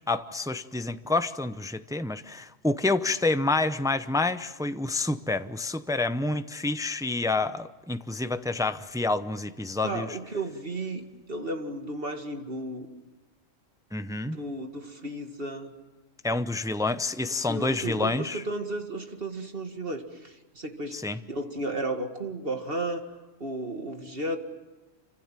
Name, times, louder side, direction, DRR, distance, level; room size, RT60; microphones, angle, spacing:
voice 1, 0.1-10.1 13.9-14.4 16.2-18.4 20.9-21.2, left 2 dB, 5° right, 11 dB, 0.6 m, -28 dB
voice 2, 9.8-12.9 14.3-15.7 17.5-21.0 21.3-23.0 23.4-24.4, right 2 dB, 50° right, 5 dB, 2.2 m, -33 dB
27.5 x 25.5 x 7.5 m, 1.2 s
omnidirectional pair, 1.3 m